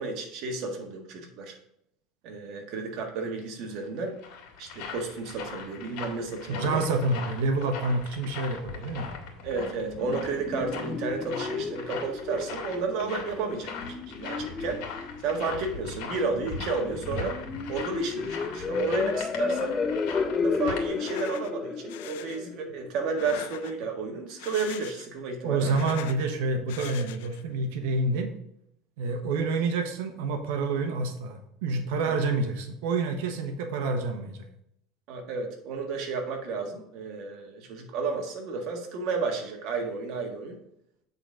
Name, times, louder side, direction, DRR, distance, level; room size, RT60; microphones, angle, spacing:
voice 1, 0.0-1.5 2.2-4.2 4.6-6.8 9.4-14.8 15.2-17.4 17.7-19.8 20.3-25.7 29.0-29.3 32.0-32.2 35.1-40.6, right 4 dB, 55° right, 3 dB, 1.6 m, -32 dB
sound 1, 3.8-20.9, left 5 dB, 65° left, 1.9 m, -40 dB
voice 2, 6.5-9.1 25.4-28.3 29.0-34.5, right 3 dB, 80° right, 6 dB, 1.1 m, -28 dB
sound 2, 9.6-23.6, left 4 dB, 20° left, 0.5 m, -33 dB
sound 3, 20.9-21.5 21.9-22.4 23.0-23.9 24.3-25.2 25.5-26.2 26.7-27.4, left 12 dB, 85° left, 0.5 m, -42 dB
8.3 x 4.0 x 5.0 m, 0.76 s
supercardioid pair, 140°, 0 cm